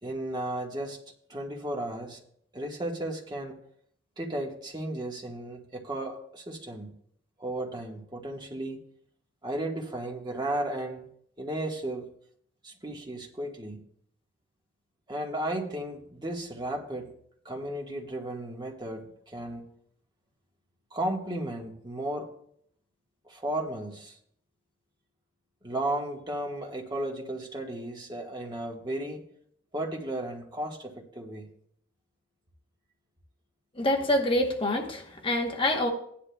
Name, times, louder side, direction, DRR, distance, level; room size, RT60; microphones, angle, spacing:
voice 1, 0.0-1.0 1.3-2.2 2.5-3.6 4.2-6.9 7.4-8.8 9.4-11.0 11.4-12.1 12.6-13.8 15.1-17.1 17.4-19.7 20.9-22.3 23.2-24.2 25.6-29.2 29.7-31.5, right 1 dB, 25° right, 0 dB, 1.4 m, -34 dB
voice 2, 33.8-35.9, left 1 dB, 30° left, 1 dB, 1.0 m, -26 dB
16.0 x 10.5 x 2.3 m, 0.68 s
head